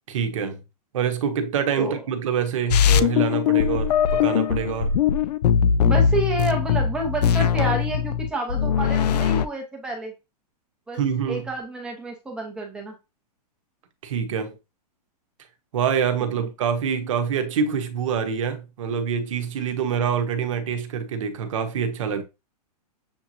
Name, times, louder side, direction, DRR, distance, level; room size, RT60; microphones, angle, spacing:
voice 1, 0.1-0.6 0.9-4.9 11.0-11.5 14.0-14.6 15.7-22.2, right 7 dB, 50° right, 0.9 m, -26 dB
sound 1, 2.7-9.5, left 8 dB, 75° left, 0.5 m, -20 dB
voice 2, 5.8-10.1 10.9-11.0 11.3-12.9 16.4-16.5, right 2 dB, 5° right, 0.7 m, -29 dB
6.8 x 2.9 x 2.6 m
supercardioid pair, 175°, 21 cm